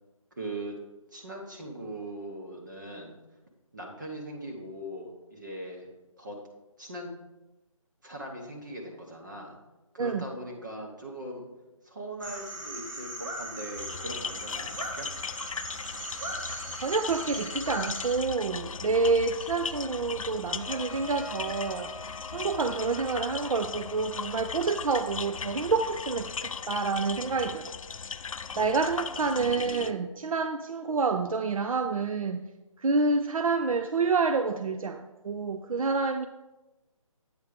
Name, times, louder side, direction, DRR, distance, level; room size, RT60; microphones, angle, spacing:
voice 1, 0.3-0.8 1.1-3.1 3.7-5.9 6.2-6.4 6.8-7.1 8.0-9.5 9.9-11.5 11.8-15.1 29.4-30.0, right 1 dB, 35° right, -1 dB, 0.9 m, -40 dB
sound 1, 12.2-18.2, right 1 dB, 65° right, 1.8 m, -38 dB
sound 2, 13.8-29.9, left 6 dB, 70° left, 0.4 m, -38 dB
voice 2, 16.8-21.9 22.3-27.7 28.6-32.4 32.8-36.3, right 4 dB, 80° right, 8 dB, 0.5 m, -28 dB
Trumpet, 20.6-25.4, equal, 15° left, 0.7 m, -46 dB
8.4 x 4.4 x 4.9 m, 1.0 s
hypercardioid pair, 180°, 18 cm